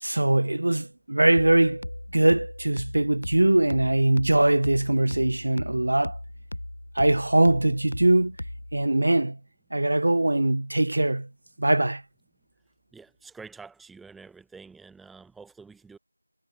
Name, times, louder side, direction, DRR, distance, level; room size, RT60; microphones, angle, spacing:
voice 1, 0.0-6.2 7.0-8.4 8.7-9.4 9.7-11.3 11.6-12.0, right 1 dB, 60° right, 0.3 m, -22 dB
sound 1, 1.4-8.9, left 1 dB, 70° left, 3.5 m, -38 dB
voice 2, 12.9-16.0, right 4 dB, ahead, 0.9 m, -47 dB
figure-of-eight pair, 175°, 0 cm